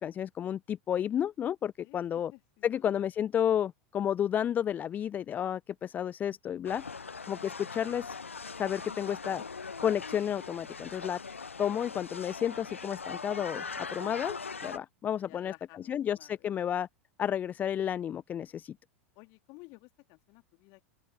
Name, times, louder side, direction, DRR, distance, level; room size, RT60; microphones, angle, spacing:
voice 1, 0.0-2.3 2.6-6.8 7.3-8.2 8.6-9.4 9.8-11.2 11.6-14.4 14.6-15.5 15.9-16.9 17.2-18.8, left 9 dB, 25° left, 0.4 m, -31 dB
voice 2, 1.8-3.1 15.2-16.5 19.1-20.9, left 28 dB, 45° left, 2.9 m, -55 dB
sound 1, 6.6-14.8, left 5 dB, 80° left, 0.9 m, -41 dB
open air
figure-of-eight pair, 85°, 7 cm